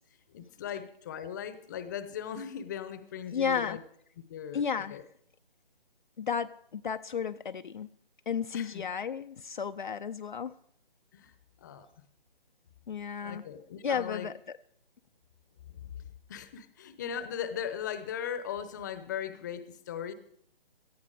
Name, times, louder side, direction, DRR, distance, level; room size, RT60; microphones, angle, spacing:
voice 1, 0.3-3.8 4.3-5.0 8.5-8.8 11.1-11.3 11.6-11.9 13.2-14.3 15.7-15.9 16.3-20.1, left 8 dB, 20° left, 12 dB, 0.8 m, -38 dB
voice 2, 3.3-3.8 4.5-5.0 6.2-7.9 8.3-10.5 12.9-13.4 13.8-14.6, left 7 dB, 55° left, 9 dB, 0.6 m, -33 dB
17.5 x 13.5 x 4.9 m, 0.65 s
figure-of-eight pair, 155°, 29 cm